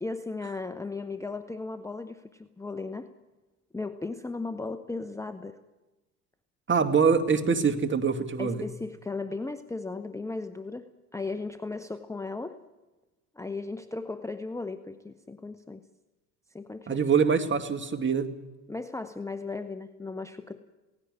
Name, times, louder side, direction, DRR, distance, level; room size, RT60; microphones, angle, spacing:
voice 1, 0.0-3.1 3.7-5.6 8.4-12.6 13.4-15.8 16.5-17.0 18.7-20.6, left 3 dB, 5° left, 10 dB, 0.9 m, -36 dB
voice 2, 6.7-8.7 16.9-18.3, right 6 dB, 25° right, 7 dB, 2.2 m, -24 dB
17.5 x 17.0 x 9.7 m, 1.1 s
hypercardioid pair, 80°, 47 cm